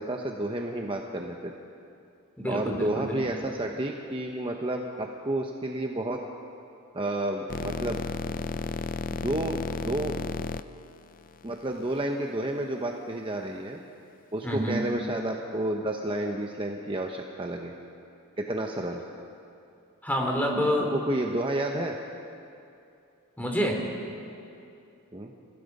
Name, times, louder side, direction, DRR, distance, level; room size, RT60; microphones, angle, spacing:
voice 1, 0.0-1.5 2.5-6.2 6.9-8.0 9.2-10.1 11.4-13.8 14.3-17.7 18.4-19.0 20.9-21.9 25.1-25.3, right 1 dB, 25° right, 2 dB, 0.9 m, -31 dB
voice 2, 2.4-3.2 14.4-14.8 20.0-20.9 23.4-23.8, equal, 10° left, 0 dB, 2.9 m, -27 dB
sound 1, 7.5-12.0, left 4 dB, 40° left, 0.5 m, -33 dB
30.0 x 16.0 x 5.4 m, 2.6 s
head